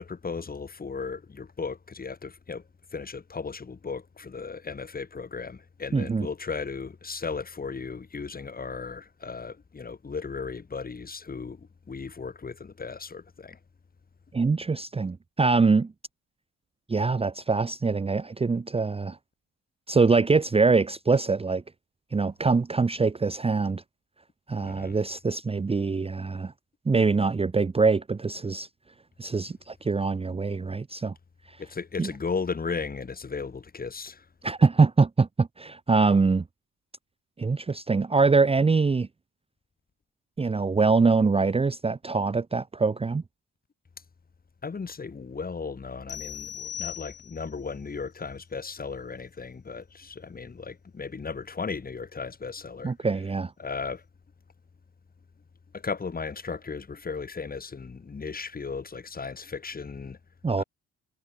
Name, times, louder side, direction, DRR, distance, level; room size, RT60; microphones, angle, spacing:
voice 1, 0.0-2.6 2.9-13.6 24.6-25.0 31.6-34.3 44.6-52.9 53.6-54.0 55.7-60.2 60.5-60.6, left 5 dB, 30° left, 2.2 m, -36 dB
voice 2, 5.9-6.3 14.3-15.9 16.9-19.2 19.9-21.6 22.1-23.8 24.5-26.5 26.9-28.7 29.2-31.1 32.0-32.1 34.4-36.4 37.4-39.1 40.4-43.2 52.8-53.5 60.4-60.6, right 4 dB, 20° right, 0.8 m, -24 dB
sound 1, 46.1-47.6, left 10 dB, 55° left, 1.3 m, -38 dB
cardioid pair, 90°, 30 cm